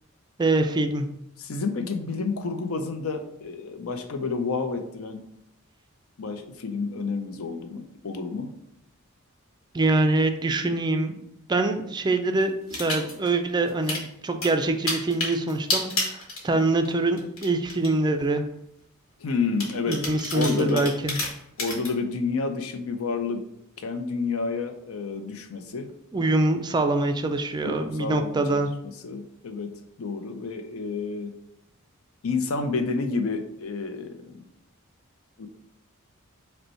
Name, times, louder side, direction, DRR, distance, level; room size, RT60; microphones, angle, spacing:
voice 1, 0.4-1.1 9.7-11.2 11.5-18.4 19.9-21.2 26.1-28.7, right 2 dB, 20° right, 6 dB, 0.3 m, -24 dB
voice 2, 1.4-5.2 6.2-8.5 19.2-20.0 20.3-20.9 21.6-23.4 23.8-25.9 27.6-28.6 29.0-29.7 30.0-31.3 32.2-34.5 35.4-35.5, left 4 dB, 85° left, 7 dB, 0.5 m, -30 dB
sound 1, 12.7-13.3 13.7-14.0 14.4-16.9 17.2-17.9 18.5-18.6 19.6-21.9, left 2 dB, 70° left, 1.3 m, -29 dB
5.2 x 2.2 x 4.3 m, 0.78 s
head